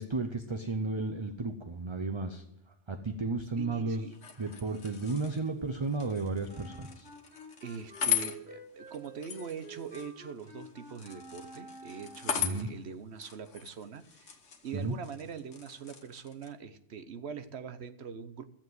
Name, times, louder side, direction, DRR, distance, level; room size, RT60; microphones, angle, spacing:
voice 1, 0.0-2.4 2.9-4.1 4.4-7.1 12.4-12.7 14.7-14.9, right 3 dB, 30° right, 6 dB, 0.7 m, -33 dB
voice 2, 3.6-4.2 7.6-14.4 14.6-18.4, right 6 dB, 65° right, 10 dB, 1.1 m, -43 dB
sound 1, 4.1-16.5, left 9 dB, 85° left, 1.6 m, -39 dB
Wind instrument woodwind instrument, 6.5-12.5, right 1 dB, 10° right, 4.6 m, -50 dB
13.5 x 7.4 x 7.9 m, 0.82 s
omnidirectional pair, 1.2 m